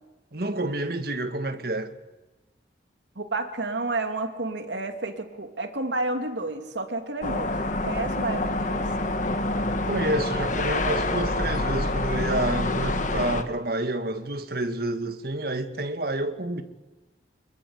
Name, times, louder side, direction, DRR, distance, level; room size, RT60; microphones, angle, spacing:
voice 1, 0.3-1.9 9.9-16.6, right 2 dB, 55° right, 1.8 m, -29 dB
voice 2, 3.2-7.6 7.8-8.9, right 2 dB, 75° right, 2.5 m, -30 dB
sound 1, 7.2-13.4, left 2 dB, 45° left, 1.6 m, -27 dB
25.0 x 21.5 x 8.1 m
head